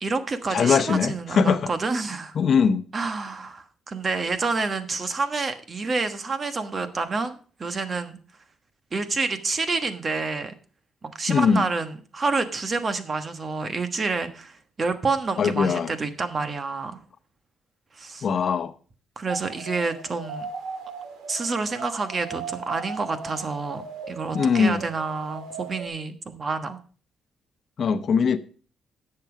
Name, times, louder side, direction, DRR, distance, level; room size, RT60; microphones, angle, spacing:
voice 1, 0.0-2.3 2.9-8.2 8.9-10.5 11.0-17.0 17.9-18.3 19.2-20.5 21.3-26.8, right 4 dB, 35° right, 1.3 m, -28 dB
voice 2, 0.5-1.7 2.4-2.8 11.3-11.7 15.4-15.9 18.2-18.7 24.3-24.8 27.8-28.4, left 6 dB, 55° left, 0.8 m, -21 dB
sound 1, 19.3-25.9, right 5 dB, 80° right, 1.9 m, -37 dB
10.5 x 7.0 x 5.0 m
cardioid pair, 90°, 0 cm